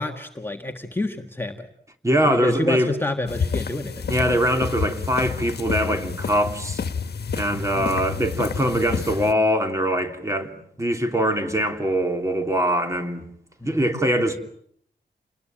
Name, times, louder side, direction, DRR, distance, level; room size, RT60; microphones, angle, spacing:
voice 1, 0.0-1.7 2.3-4.1 7.7-7.9 13.6-13.8, left 1 dB, 10° left, 1.6 m, -28 dB
voice 2, 2.0-2.9 4.1-6.8 7.4-13.2 13.6-14.4, equal, 15° right, 3.0 m, -22 dB
sound 1, 3.3-9.3, left 5 dB, 70° left, 1.4 m, -29 dB
29.0 x 20.5 x 9.0 m
wide cardioid pair, 155°, 17 cm